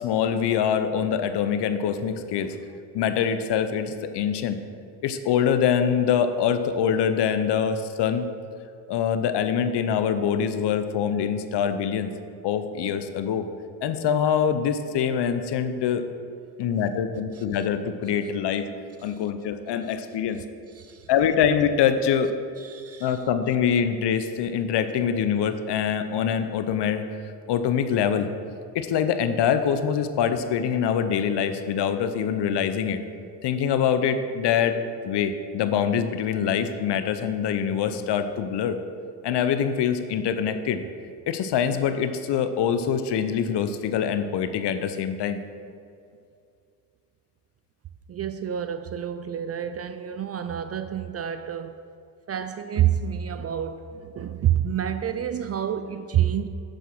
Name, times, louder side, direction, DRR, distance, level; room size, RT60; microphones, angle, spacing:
voice 1, 0.0-2.6 2.9-4.6 5.0-8.3 8.9-12.1 12.4-13.4 13.8-16.0 16.6-18.7 19.0-20.4 21.1-22.3 23.0-27.1 27.5-28.3 28.7-33.0 33.4-34.8 35.0-38.8 39.2-40.8 41.3-45.4, left 8 dB, 55° left, 10 dB, 0.9 m, -24 dB
voice 2, 20.7-21.1 22.6-23.2 48.1-51.9 52.3-56.5, right 10 dB, 35° right, 10 dB, 0.4 m, -28 dB
7.5 x 6.6 x 6.1 m, 2.4 s
supercardioid pair, 75°, 50 cm